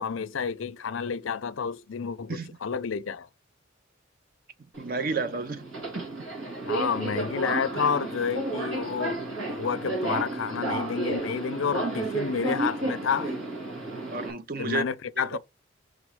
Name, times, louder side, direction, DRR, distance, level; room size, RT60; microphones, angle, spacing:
voice 1, 0.0-3.3 6.6-9.2 9.5-13.4 14.6-15.4, left 6 dB, 75° left, 0.5 m, -30 dB
Subway metro underground, 4.7-14.3, right 2 dB, 80° right, 2.3 m, -32 dB
voice 2, 4.8-5.7 14.1-14.8 15.2-15.4, right 4 dB, 45° right, 0.6 m, -31 dB
5.1 x 3.9 x 4.7 m
head